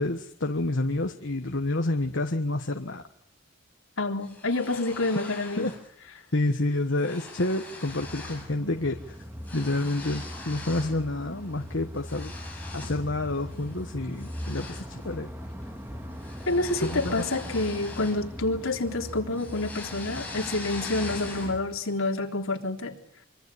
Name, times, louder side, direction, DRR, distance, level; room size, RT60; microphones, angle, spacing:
voice 1, 0.0-3.0 5.6-5.7 6.3-9.2 9.5-12.3 12.7-15.3 16.8-17.2, left 2 dB, 60° left, 5 dB, 1.4 m, -29 dB
voice 2, 4.0-5.7 16.5-22.9, left 2 dB, 75° left, 3 dB, 3.8 m, -28 dB
sound 1, 4.2-5.9 6.2-6.5 6.7-8.5 8.8-11.0 11.4-13.1 13.5-13.7 14.2-18.7 19.0-21.8, left 3 dB, 5° left, 7.2 m, -42 dB
sound 2, 7.8-21.6, equal, 10° right, 2.4 m, -40 dB
25.5 x 25.0 x 8.6 m, 0.65 s
head